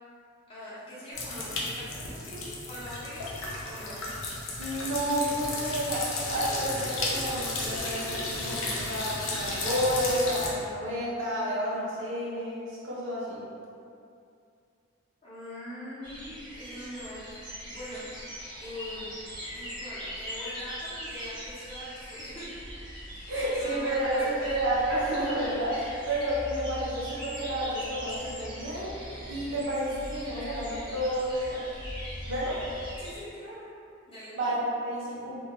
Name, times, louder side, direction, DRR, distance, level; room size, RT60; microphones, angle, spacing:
voice 1, 0.5-4.1 15.2-18.0 18.6-19.1 19.5-22.5 23.2-24.5 33.0-33.7 34.1-34.4, left 1 dB, 25° left, -10 dB, 0.5 m, -42 dB
sound 1, 1.1-10.5, left 2 dB, 80° left, 0.5 m, -34 dB
voice 2, 4.6-13.4 23.2-29.0 29.3-31.6 32.2-32.6 34.3-35.4, right 1 dB, 70° right, -7 dB, 0.6 m, -30 dB
sound 2, 16.0-33.2, equal, 20° right, 0.5 m, -41 dB
2.2 x 2.1 x 2.8 m, 2.5 s
head